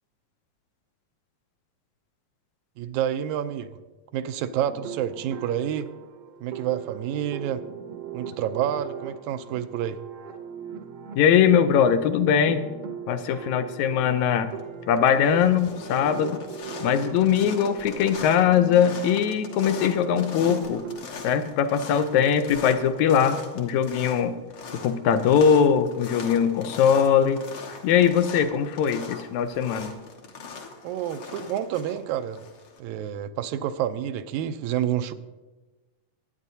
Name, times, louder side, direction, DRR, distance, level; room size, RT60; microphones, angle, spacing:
voice 1, 2.8-3.8 4.1-5.9 6.4-7.6 8.1-10.0 30.8-32.5 32.8-35.1, right 10 dB, 85° right, 11 dB, 2.0 m, -29 dB
sound 1, 4.7-21.1, right 7 dB, 70° right, 1.6 m, -40 dB
voice 2, 11.2-12.6 13.1-14.5 14.9-16.4 16.8-20.8 21.2-24.4 24.7-27.4 27.8-29.9, left 8 dB, 80° left, 10 dB, 2.0 m, -21 dB
sound 2, 14.3-14.6 14.9-32.8, left 5 dB, 55° left, 1.9 m, -40 dB
22.0 x 9.2 x 2.7 m, 1.2 s
omnidirectional pair, 3.3 m